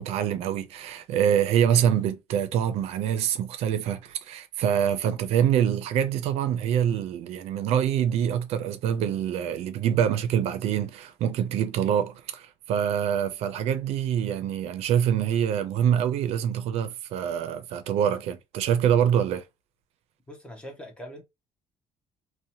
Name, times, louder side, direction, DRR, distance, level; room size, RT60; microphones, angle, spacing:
voice 1, 0.0-19.4, right 9 dB, 70° right, 0.4 m, -25 dB
voice 2, 20.3-21.2, equal, 10° left, 0.6 m, -42 dB
2.7 x 2.1 x 2.7 m
cardioid pair, 165°, 11 cm